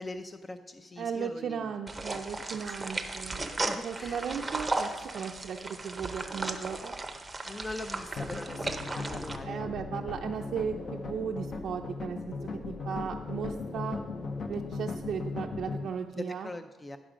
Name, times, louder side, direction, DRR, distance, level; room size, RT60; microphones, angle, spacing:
voice 1, 0.0-1.7 2.8-3.0 3.3-4.3 7.4-9.8 16.1-17.0, left 2 dB, 20° left, 9 dB, 0.4 m, -42 dB
voice 2, 1.0-3.5 3.8-7.0 9.5-12.4 12.6-14.0 14.5-16.5, right 7 dB, 60° right, 1 dB, 0.5 m, -36 dB
sound 1, 1.9-9.4, right 2 dB, 15° right, 0.7 m, -36 dB
sound 2, 8.2-15.8, left 3 dB, 45° left, 0.7 m, -37 dB
10.5 x 6.1 x 5.0 m, 1.2 s
cardioid pair, 130°, 0 cm